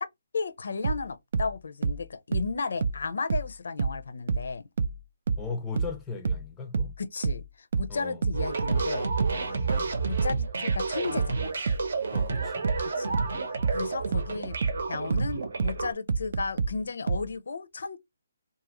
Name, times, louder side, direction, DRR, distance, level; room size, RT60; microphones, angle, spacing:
voice 1, 0.3-4.6 7.0-9.1 9.5-9.7 10.0-11.6 13.0-13.2 13.7-14.6 14.9-18.0, left 4 dB, 70° left, 0.5 m, -34 dB
sound 1, 0.8-4.0 4.3-17.3, right 5 dB, 50° right, 0.3 m, -29 dB
voice 2, 5.4-6.9 7.9-8.3 9.5-9.9 12.1-12.7 13.7-13.9, left 4 dB, 10° left, 0.4 m, -38 dB
sound 2, 8.3-15.9, right 4 dB, 70° right, 0.8 m, -31 dB
2.7 x 2.4 x 2.9 m
hypercardioid pair, 165°, 0 cm